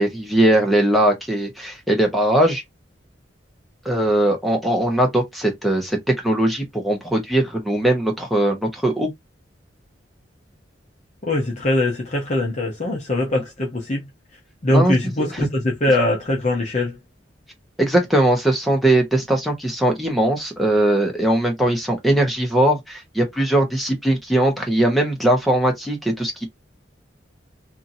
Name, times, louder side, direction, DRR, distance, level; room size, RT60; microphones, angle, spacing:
voice 1, 0.0-2.6 3.8-9.1 13.3-13.4 14.7-15.5 17.8-26.4, right 1 dB, ahead, 0.9 m, -20 dB
voice 2, 11.3-14.0 14.6-17.0, left 1 dB, 40° left, 0.7 m, -22 dB
2.7 x 2.6 x 2.6 m
head